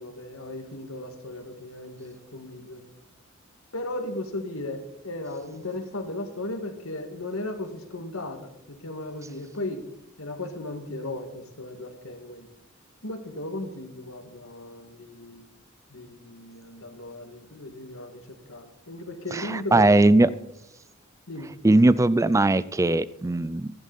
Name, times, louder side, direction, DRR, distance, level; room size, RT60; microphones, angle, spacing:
voice 1, 0.0-2.8 3.7-9.9 10.2-12.5 13.0-15.4 15.9-18.1 18.5-20.3 21.3-21.5, left 1 dB, 80° left, 6 dB, 1.8 m, -36 dB
voice 2, 19.3-20.3 21.6-23.7, right 2 dB, 15° right, 18 dB, 0.3 m, -19 dB
15.0 x 11.0 x 4.1 m, 0.81 s
head